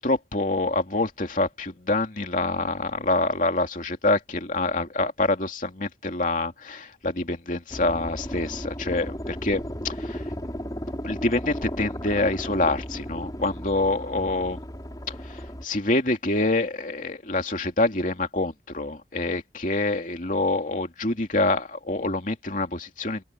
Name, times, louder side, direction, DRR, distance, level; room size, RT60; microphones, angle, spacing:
voice 1, 0.0-10.2 11.0-14.6 15.2-23.2, left 2 dB, 45° left, 2.7 m, -26 dB
sound 1, 7.7-15.6, equal, 20° left, 5.2 m, -35 dB
open air
head